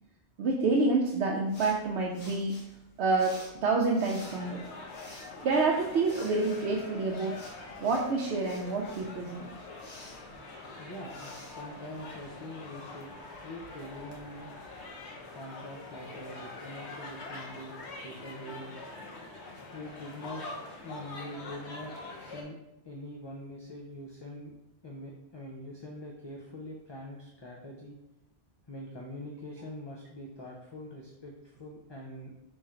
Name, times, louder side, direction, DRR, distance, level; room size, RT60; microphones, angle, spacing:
voice 1, 0.4-2.6 3.0-4.6 5.4-7.4 7.8-9.5, right 3 dB, 80° right, -1 dB, 0.9 m, -28 dB
sound 1, 1.5-12.4, left 1 dB, 65° left, 1.4 m, -53 dB
sound 2, 4.2-22.4, left 2 dB, 80° left, 1.2 m, -44 dB
voice 2, 10.8-13.1 13.4-14.5 15.3-18.8 19.7-20.4 20.8-21.9 22.2-22.6 22.8-24.5 24.8-28.0 28.7-32.3, left 1 dB, 35° left, -2 dB, 0.5 m, -44 dB
3.7 x 3.1 x 4.3 m, 0.91 s
omnidirectional pair, 1.1 m